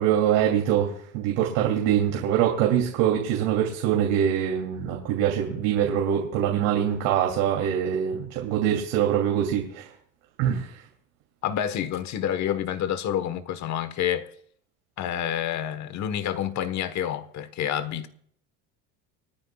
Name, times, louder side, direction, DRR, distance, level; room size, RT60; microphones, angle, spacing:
voice 1, 0.0-9.9 10.4-10.8, right 9 dB, 85° right, 3.0 m, -24 dB
voice 2, 11.4-14.3 15.0-18.1, left 10 dB, 50° left, 1.3 m, -28 dB
28.5 x 9.8 x 2.4 m
cardioid pair, 145°, 37 cm